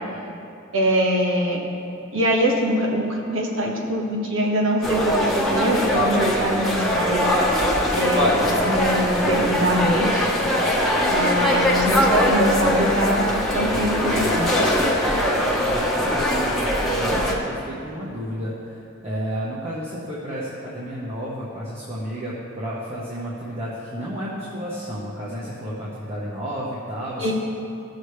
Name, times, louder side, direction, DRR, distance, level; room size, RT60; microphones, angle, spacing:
voice 1, 0.7-1.6 2.1-7.3 7.9-8.4 8.6-10.2 11.1-13.2 13.5-14.5 27.2-27.3, equal, 90° right, -1 dB, 1.4 m, -23 dB
sound 1, 4.8-17.3, equal, ahead, 1.1 m, -21 dB
voice 2, 15.6-27.3, equal, 35° right, -8 dB, 1.2 m, -32 dB
15.5 x 6.4 x 3.3 m, 2.6 s
head